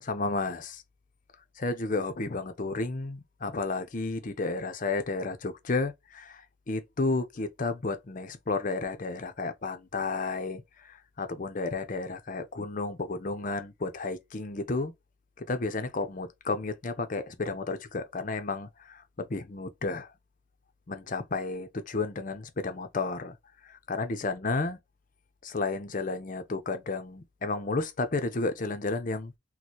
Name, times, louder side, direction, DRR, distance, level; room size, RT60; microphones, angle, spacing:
voice 1, 0.0-0.8 1.6-14.9 15.4-20.1 20.9-23.4 23.6-24.8 25.4-29.3, left 3 dB, 40° left, 0.6 m, -32 dB
4.3 x 2.1 x 2.9 m
head